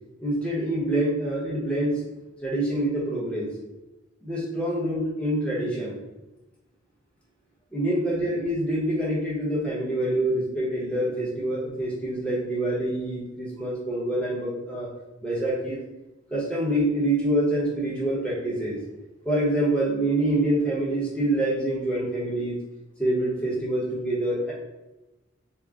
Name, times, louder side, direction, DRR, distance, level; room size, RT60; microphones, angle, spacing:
voice 1, 0.2-2.0 2.4-3.5 4.2-6.0 7.7-14.9 15.2-15.8 16.3-18.8 19.2-22.5 23.0-24.5, right 1 dB, 5° left, -7 dB, 0.9 m, -26 dB
3.7 x 2.1 x 3.5 m, 1.0 s
head